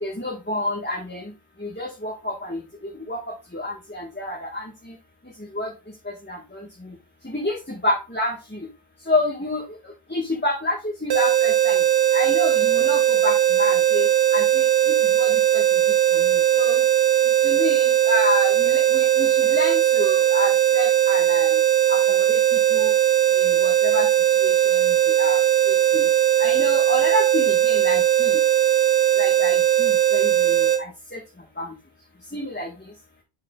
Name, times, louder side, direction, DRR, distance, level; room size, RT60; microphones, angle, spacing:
voice 1, 0.0-1.2 1.6-2.6 3.1-3.2 3.5-4.6 5.5-5.7 6.3-6.6 7.2-8.6 9.1-9.6 10.1-11.8 12.1-14.6 15.2-15.3 15.5-15.6 16.1-16.2 16.5-16.8 17.4-21.6 21.9-22.0 22.3-22.4 22.7-22.9 23.4-24.1 24.4-24.5 25.2-25.4 25.7-26.1 26.4-28.3 29.2-30.7 31.1-31.2 31.6-31.7 32.3-32.7, left 1 dB, 10° left, -1 dB, 1.3 m, -28 dB
sound 1, 11.1-30.8, right 12 dB, 75° right, 1.0 m, -19 dB
6.7 x 6.5 x 2.3 m, 0.28 s
omnidirectional pair, 1.1 m